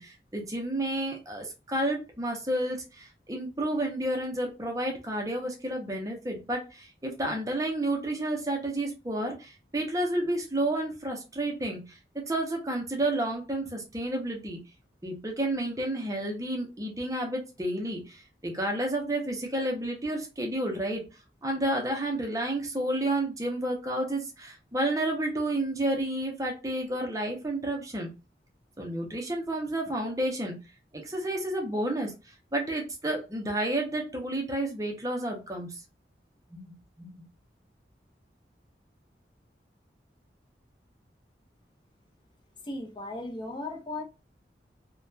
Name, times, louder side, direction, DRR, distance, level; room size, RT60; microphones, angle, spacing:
voice 1, 0.0-14.6 15.0-21.1 21.4-28.1 28.8-30.6 30.9-32.1 32.5-35.8 36.5-36.7 37.0-37.2, right 1 dB, 20° right, 0.6 m, -31 dB
voice 2, 42.6-44.0, left 2 dB, 25° left, 0.5 m, -36 dB
2.7 x 2.2 x 2.2 m
head